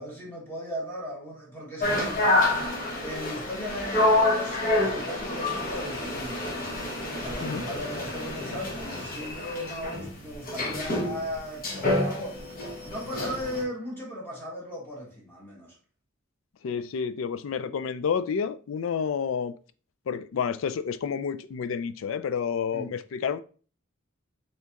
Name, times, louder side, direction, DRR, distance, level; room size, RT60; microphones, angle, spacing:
voice 1, 0.0-2.4 3.0-6.6 7.2-12.4 12.8-15.7 22.7-22.9, equal, 10° left, 1.5 m, -37 dB
sound 1, 1.8-13.6, left 2 dB, 45° left, 1.2 m, -28 dB
voice 2, 16.6-19.5 20.1-23.4, left 6 dB, 75° left, 0.4 m, -29 dB
4.5 x 3.4 x 2.9 m
head